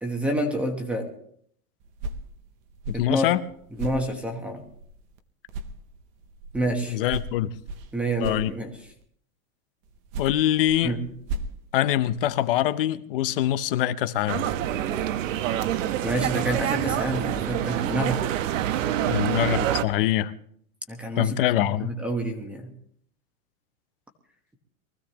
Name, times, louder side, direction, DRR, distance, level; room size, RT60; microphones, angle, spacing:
voice 1, 0.0-1.1 2.9-3.2 3.8-4.6 6.5-7.0 7.9-8.7 10.8-11.0 16.0-18.2 20.9-21.3 21.8-22.7, right 1 dB, 5° right, 1.1 m, -28 dB
sound 1, 1.8-5.2 5.5-9.0 9.8-12.5, right 2 dB, 25° right, 0.6 m, -38 dB
voice 2, 2.9-3.4 6.9-7.5 8.2-8.5 10.2-10.9 11.7-14.4 19.1-20.3 21.2-21.9, left 12 dB, 40° left, 0.7 m, -24 dB
sound 2, 14.3-19.8, right 11 dB, 60° right, 1.0 m, -26 dB
23.5 x 15.5 x 2.9 m
supercardioid pair, 170°, 44 cm